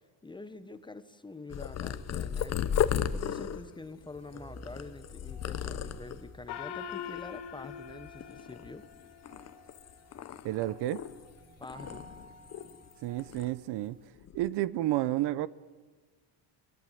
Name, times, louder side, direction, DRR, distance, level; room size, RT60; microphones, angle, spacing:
voice 1, 0.2-2.7 3.1-8.9 11.6-12.0, left 2 dB, 10° left, 1.1 m, -46 dB
Purr, 1.5-6.3 6.9-7.4 7.6-8.9 9.3-11.3 11.6-12.9 13.2-13.5 14.2-14.5, left 9 dB, 30° left, 0.9 m, -35 dB
sound 1, 4.1-14.1, right 1 dB, 15° right, 2.4 m, -55 dB
Gong, 6.5-9.4, left 9 dB, 55° left, 2.0 m, -42 dB
voice 2, 10.4-11.0 13.0-14.0 14.3-15.5, right 15 dB, 55° right, 0.8 m, -30 dB
23.0 x 21.5 x 9.2 m
cardioid pair, 150°, 48 cm